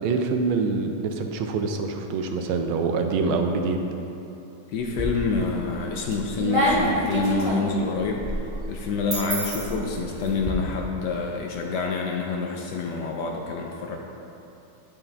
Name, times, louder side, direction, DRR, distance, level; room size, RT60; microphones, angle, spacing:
voice 1, 0.0-3.8, right 4 dB, 90° right, 5 dB, 1.5 m, -25 dB
voice 2, 4.7-8.2 8.7-14.0, left 4 dB, 70° left, 1 dB, 1.0 m, -27 dB
sound 1, 4.7-5.4 5.9-10.5, equal, 50° right, 0.3 m, -27 dB
8.8 x 5.7 x 3.4 m, 2.9 s
omnidirectional pair, 2.2 m